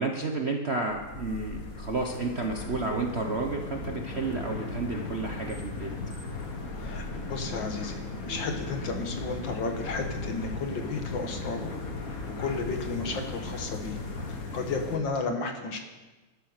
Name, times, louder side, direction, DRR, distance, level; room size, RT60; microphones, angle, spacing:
voice 1, 0.0-5.9 13.1-13.3, right 3 dB, 45° right, 2 dB, 0.9 m, -31 dB
sound 1, 0.9-15.0, left 3 dB, 45° left, 1.8 m, -37 dB
sound 2, 3.3-10.6, left 1 dB, 20° right, 0.4 m, -47 dB
voice 2, 7.3-8.0 8.3-11.7 12.4-14.0 14.5-15.8, left 4 dB, 60° left, 4 dB, 2.1 m, -33 dB
12.0 x 11.5 x 6.6 m, 1.2 s
omnidirectional pair, 2.4 m